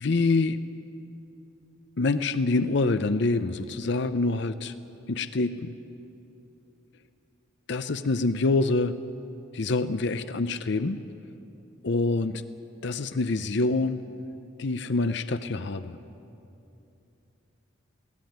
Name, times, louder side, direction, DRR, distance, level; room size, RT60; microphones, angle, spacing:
voice 1, 0.0-0.6 2.0-4.7 5.1-5.7 7.7-9.0 9.5-11.0 11.8-12.4 12.8-14.0 14.6-16.0, left 3 dB, 60° left, 12 dB, 0.6 m, -26 dB
22.0 x 17.5 x 9.3 m, 2.9 s
head